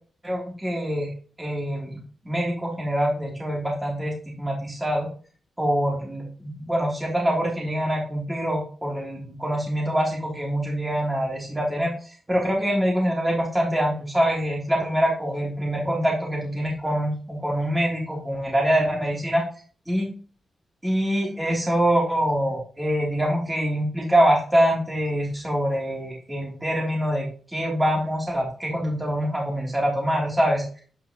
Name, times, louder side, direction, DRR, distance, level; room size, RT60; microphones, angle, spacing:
voice 1, 0.2-1.1 1.4-2.0 2.2-5.1 5.6-11.9 12.3-19.4 19.9-20.1 20.8-30.6, equal, 10° right, -3 dB, 3.0 m, -24 dB
9.0 x 5.4 x 3.0 m, 0.39 s
wide cardioid pair, 125°, 0 cm